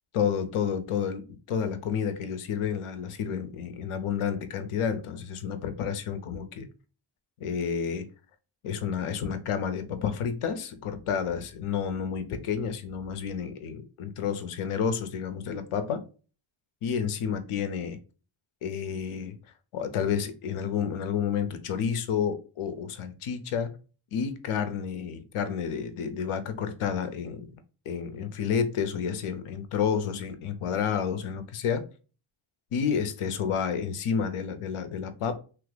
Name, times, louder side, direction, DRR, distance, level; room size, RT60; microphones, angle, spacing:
voice 1, 0.1-6.7 7.4-8.1 8.6-16.0 16.8-18.0 18.6-19.4 19.7-23.7 24.1-27.5 27.9-31.8 32.7-35.3, left 7 dB, 85° left, 0.6 m, -30 dB
3.0 x 2.5 x 3.2 m
cardioid pair, 65°, 50 cm